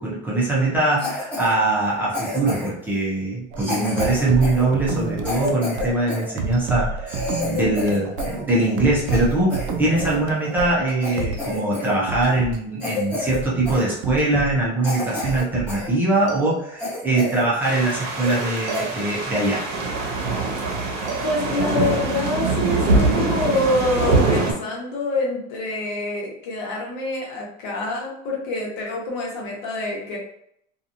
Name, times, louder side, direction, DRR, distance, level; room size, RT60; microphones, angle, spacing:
voice 1, 0.0-19.7, right 2 dB, 10° right, -5 dB, 0.5 m, -22 dB
Cough, 1.0-1.5 2.1-2.8 3.6-6.3 6.7-6.8 7.1-8.4 8.7-10.2 10.6-10.7 11.0-11.9 12.2-12.4 12.8-13.4 13.7-13.9 14.4-14.5 14.8-15.9 16.3-16.4 16.8-17.5 17.8-17.9 18.2-18.5 18.7-18.9 19.4-19.6, left 2 dB, 5° left, 1.0 m, -30 dB
Elevator Music, 3.5-11.5 12.1-12.6 13.3-14.7 15.1-15.9 16.3-17.1 18.7-19.5 21.1-21.9, right 4 dB, 60° right, 0.4 m, -30 dB
sound 1, 17.6-24.5, right 3 dB, 75° right, 0.8 m, -23 dB
voice 2, 21.2-30.2, left 2 dB, 65° left, -2 dB, 1.0 m, -26 dB
2.8 x 2.4 x 2.5 m, 0.73 s
cardioid pair, 165°, 21 cm